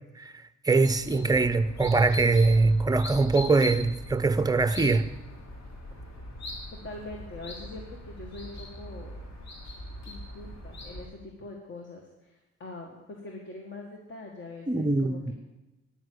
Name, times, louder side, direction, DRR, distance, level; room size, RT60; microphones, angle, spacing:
voice 1, 0.6-5.1 14.7-15.3, right 3 dB, 10° right, 0.7 m, -23 dB
sound 1, 0.7-11.1, left 1 dB, 65° left, 3.5 m, -41 dB
voice 2, 6.7-9.1 10.1-15.3, left 2 dB, 40° left, 1.9 m, -43 dB
10.0 x 7.2 x 8.1 m
cardioid pair, 90°, 30 cm